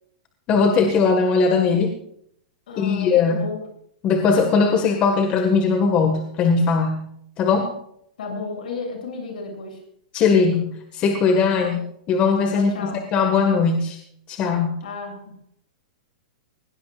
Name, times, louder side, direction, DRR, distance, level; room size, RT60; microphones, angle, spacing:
voice 1, 0.5-1.9 2.8-3.4 4.0-7.0 7.4-7.7 10.1-11.8 12.1-14.0 14.3-14.7, left 5 dB, 25° left, 4 dB, 1.7 m, -19 dB
voice 2, 2.7-3.6 8.2-9.8 11.5-11.8 12.5-13.1 14.8-15.4, left 4 dB, 70° left, 4 dB, 7.8 m, -33 dB
20.0 x 19.0 x 2.5 m, 0.67 s
supercardioid pair, 165°, 5 cm